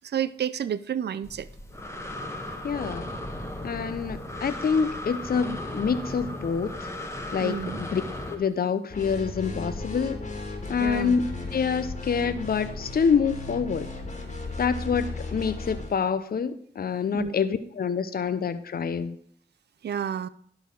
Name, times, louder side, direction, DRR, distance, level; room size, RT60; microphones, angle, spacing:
voice 1, 0.0-1.5 7.4-7.8 10.8-11.2 17.1-17.4 19.8-20.3, right 9 dB, 65° right, 16 dB, 0.4 m, -30 dB
Breathing, 1.2-8.3, left 1 dB, 15° left, 1.6 m, -36 dB
voice 2, 2.6-3.1 3.6-6.9 7.3-8.0 8.3-10.2 10.7-13.9 14.6-19.2, left 6 dB, 55° left, 13 dB, 0.5 m, -27 dB
sound 1, 8.9-16.0, left 3 dB, 35° left, 2.1 m, -35 dB
11.0 x 3.9 x 5.9 m, 0.65 s
cardioid pair, 50°, 19 cm